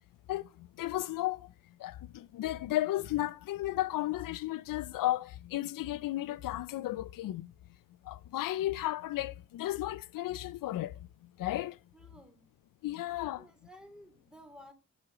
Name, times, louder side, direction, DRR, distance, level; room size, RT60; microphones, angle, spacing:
voice 1, 0.8-1.5 1.8-7.5 8.1-10.9 11.4-11.8 12.8-13.4, left 15 dB, 90° left, 0.5 m, -34 dB
voice 2, 11.9-12.5 13.3-14.7, equal, ahead, 3.0 m, -54 dB
9.7 x 6.3 x 8.6 m
cardioid pair, 60°, 32 cm